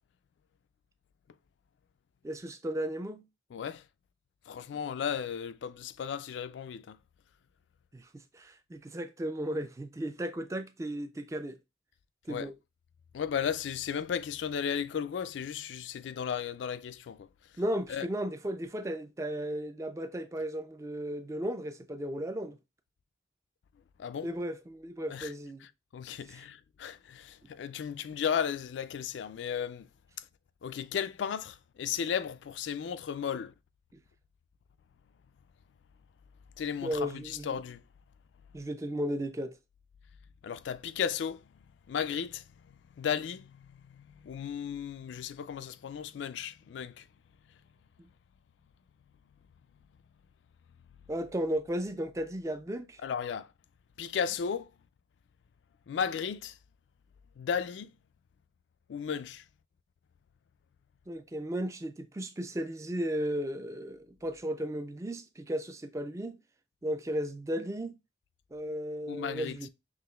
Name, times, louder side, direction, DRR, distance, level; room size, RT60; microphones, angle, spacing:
voice 1, 2.2-3.2 7.9-8.1 8.3-11.6 12.3-12.5 17.6-22.6 24.2-25.7 36.8-37.5 38.5-39.6 51.1-53.0 61.1-66.4 66.8-67.9 68.5-69.7, equal, 15° right, 0.3 m, -35 dB
voice 2, 3.5-3.8 4.5-7.0 12.3-12.5 13.1-17.3 17.9-18.1 24.0-24.3 25.1-25.3 25.6-29.9 30.6-33.5 36.6-37.8 40.4-41.4 41.9-47.1 53.0-53.5 54.0-54.7 55.9-56.6 57.4-57.9 58.9-59.4 69.1-69.6, left 7 dB, 80° left, 0.3 m, -35 dB
5.9 x 3.0 x 2.3 m
head